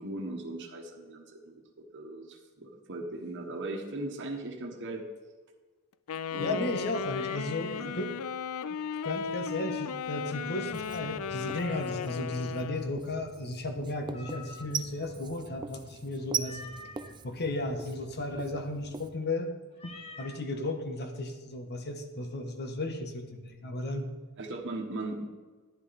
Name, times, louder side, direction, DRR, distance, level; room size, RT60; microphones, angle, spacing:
voice 1, 0.0-5.0 6.3-6.7 7.7-7.9 11.5-11.6 24.4-25.2, right 2 dB, 55° right, 1 dB, 1.3 m, -38 dB
Wind instrument woodwind instrument, 6.1-13.0, left 7 dB, 70° left, 0.4 m, -36 dB
voice 2, 6.4-8.1 9.0-16.6 17.2-19.5 19.8-24.1, left 1 dB, 50° left, 6 dB, 1.2 m, -34 dB
Meow, 7.1-7.9 11.3-12.1 14.1-14.9 16.4-17.1 19.7-20.4, left 3 dB, 25° left, 1.1 m, -47 dB
Writing, 10.7-19.2, right 6 dB, 20° right, 0.4 m, -41 dB
11.0 x 10.5 x 4.2 m, 1.4 s
head